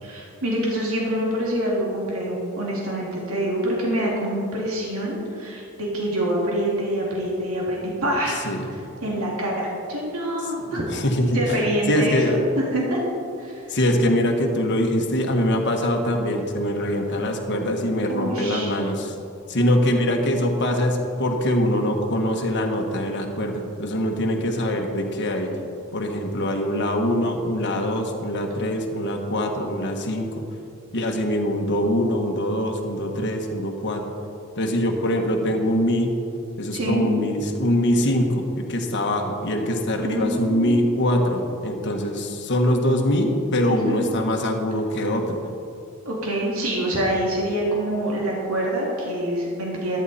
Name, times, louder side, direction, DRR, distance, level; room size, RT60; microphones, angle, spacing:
voice 1, 0.0-8.4 9.0-10.8 11.3-13.0 13.4-13.5 18.1-18.7 36.7-37.1 40.0-40.9 43.7-44.0 46.0-50.0, right 1 dB, 80° right, -4 dB, 2.6 m, -26 dB
voice 2, 10.6-12.4 13.7-19.1 19.5-25.5 25.9-30.4 30.9-34.0 34.6-36.1 36.6-45.4, left 1 dB, 55° left, 2 dB, 1.4 m, -23 dB
14.0 x 10.5 x 4.3 m, 2.5 s
head